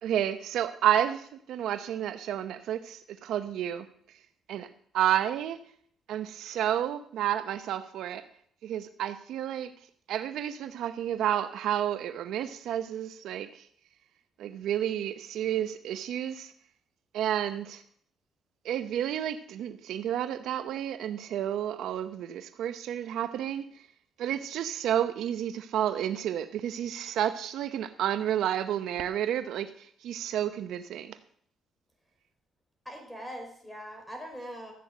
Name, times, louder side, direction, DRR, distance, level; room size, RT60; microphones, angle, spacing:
voice 1, 0.0-3.9 4.5-4.7 4.9-5.6 6.1-8.2 8.6-9.7 10.1-13.6 14.4-16.5 17.1-17.8 18.6-23.6 24.2-31.2, right 10 dB, 80° right, 0.8 m, -30 dB
voice 2, 32.8-34.7, equal, 5° left, 5.1 m, -41 dB
13.5 x 8.1 x 7.5 m
cardioid pair, 90°, 0 cm